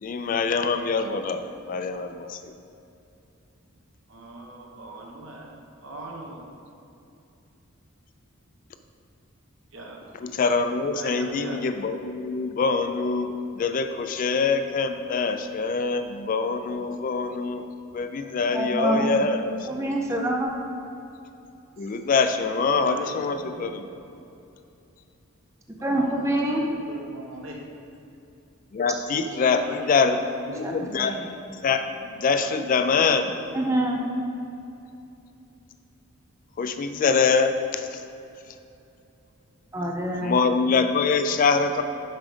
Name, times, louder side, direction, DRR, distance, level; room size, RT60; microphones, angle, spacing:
voice 1, 0.0-1.4 1.7-2.4 10.2-17.7 17.9-20.0 21.8-23.9 28.7-30.2 30.5-31.1 31.6-31.8 32.2-33.3 36.6-38.0 40.2-41.8, left 4 dB, 40° left, 8 dB, 0.3 m, -24 dB
voice 2, 4.1-6.4 9.7-10.0 10.9-11.6 21.8-21.9 22.4-23.7 25.8-27.6 29.1-30.6 32.3-32.6, right 2 dB, 60° right, -1 dB, 1.1 m, -40 dB
voice 3, 18.5-19.1 19.7-20.5 25.8-26.6 30.6-31.2 33.5-34.0 39.7-40.3, right 1 dB, 15° right, 0 dB, 0.5 m, -26 dB
7.4 x 4.9 x 5.0 m, 2.7 s
head